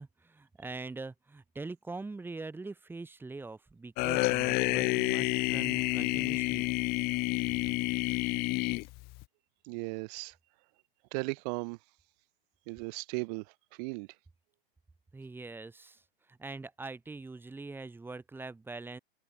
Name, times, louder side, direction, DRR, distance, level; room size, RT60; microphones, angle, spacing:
voice 1, 0.0-6.7 15.1-16.0 16.3-19.0, right 3 dB, 5° right, 3.2 m, -43 dB
sound 1, 4.0-9.2, left 24 dB, 30° left, 1.0 m, -29 dB
voice 2, 9.7-10.3 11.1-11.8 12.7-13.5 13.8-14.1, right 31 dB, 40° right, 2.0 m, -36 dB
hypercardioid pair, 125°, 30 cm